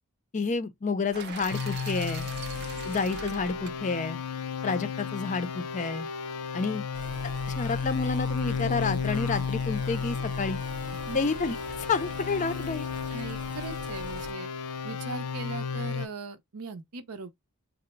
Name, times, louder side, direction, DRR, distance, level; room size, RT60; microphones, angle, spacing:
voice 1, 0.3-2.3 2.8-4.2 4.6-6.1 6.5-6.8 7.5-10.6 11.1-12.9, left 4 dB, 35° left, 0.4 m, -30 dB
sound 1, 1.1-5.2, right 6 dB, 50° right, 0.4 m, -43 dB
sound 2, 1.5-16.1, left 5 dB, 85° left, 0.5 m, -33 dB
sound 3, 6.9-14.3, right 1 dB, 20° right, 0.7 m, -43 dB
voice 2, 13.1-14.5 14.8-17.3, right 4 dB, 80° right, 0.7 m, -39 dB
3.8 x 2.0 x 4.3 m
head